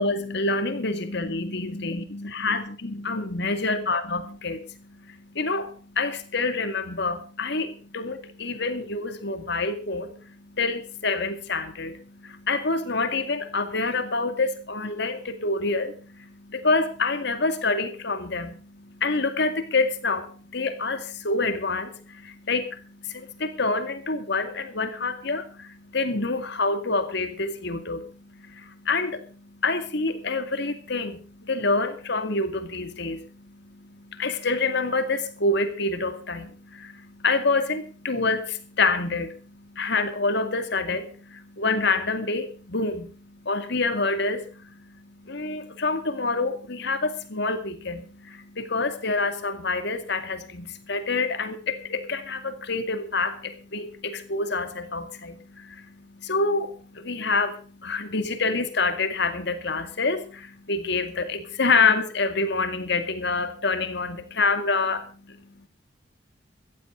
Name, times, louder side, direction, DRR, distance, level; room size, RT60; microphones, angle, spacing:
voice 1, 0.0-65.7, left 3 dB, 65° left, 9 dB, 2.2 m, -27 dB
16.0 x 14.5 x 3.9 m, 0.38 s
head